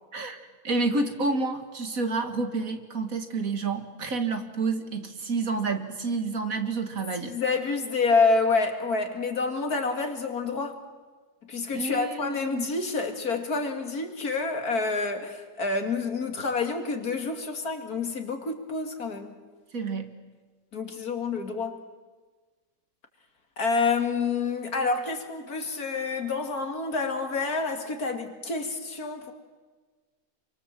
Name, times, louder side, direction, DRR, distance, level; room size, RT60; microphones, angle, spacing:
voice 1, 0.1-7.3 11.7-12.7 19.7-20.1, right 3 dB, 65° right, 7 dB, 2.3 m, -29 dB
voice 2, 7.2-10.8 11.5-19.4 20.7-21.8 23.6-29.3, left 4 dB, 75° left, 5 dB, 2.9 m, -28 dB
28.0 x 24.5 x 7.6 m, 1.4 s
omnidirectional pair, 1.6 m